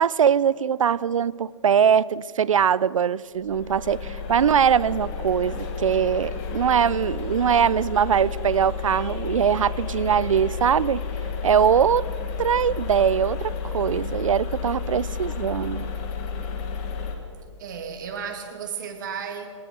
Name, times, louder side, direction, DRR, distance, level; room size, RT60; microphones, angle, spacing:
voice 1, 0.0-11.0 11.4-12.0 12.4-15.9, right 8 dB, 85° right, 21 dB, 0.6 m, -22 dB
sound 1, 3.4-17.2, left 5 dB, 20° left, 1.8 m, -31 dB
voice 2, 17.6-19.5, right 7 dB, 35° right, 4 dB, 2.4 m, -34 dB
20.0 x 19.5 x 6.9 m, 2.3 s
hypercardioid pair, 170°, 16 cm